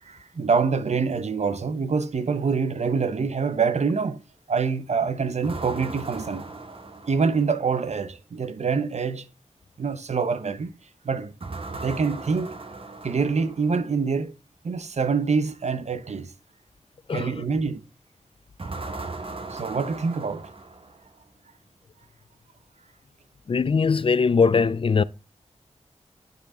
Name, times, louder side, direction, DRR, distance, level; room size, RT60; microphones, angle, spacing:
voice 1, 0.0-4.2 4.5-6.5 7.1-9.3 9.8-10.7 11.0-11.3 11.7-12.5 13.0-14.3 14.6-16.3 17.1-17.8 19.5-20.5, right 5 dB, 70° right, 0.8 m, -25 dB
sound 1, 5.4-7.8 11.4-13.9 18.6-21.2, right 3 dB, 50° right, 1.3 m, -38 dB
voice 2, 23.5-25.0, left 5 dB, 50° left, 0.4 m, -21 dB
9.4 x 5.1 x 3.6 m
wide cardioid pair, 90°, 12 cm